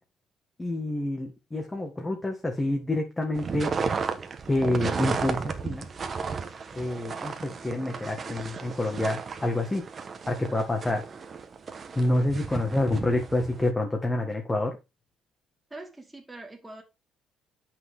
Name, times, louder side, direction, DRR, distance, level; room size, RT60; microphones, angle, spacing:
voice 1, 0.6-3.8 4.5-5.9 6.7-9.9 10.3-11.0 11.9-14.8, left 1 dB, 10° left, 1.7 m, -28 dB
sound 1, 3.3-13.7, right 5 dB, 30° right, 1.2 m, -34 dB
voice 2, 15.7-16.8, right 2 dB, 10° right, 2.5 m, -43 dB
9.1 x 6.1 x 3.6 m
cardioid pair, 140°, 0 cm